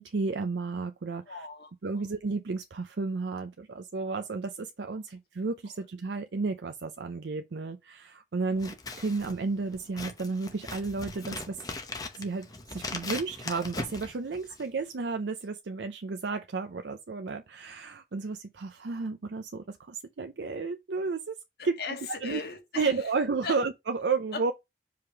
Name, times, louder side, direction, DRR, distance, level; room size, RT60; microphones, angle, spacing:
voice 1, 0.0-1.5 1.8-11.6 12.1-21.4 21.6-21.8 22.2-22.4 22.8-24.5, right 4 dB, 85° right, 0.5 m, -32 dB
voice 2, 1.3-2.1 13.0-13.2 21.6-22.9 23.4-23.6 24.3-24.4, left 4 dB, 60° left, 1.7 m, -38 dB
Scissors, 8.5-14.8, left 3 dB, 20° left, 0.9 m, -40 dB
5.0 x 3.6 x 5.6 m
head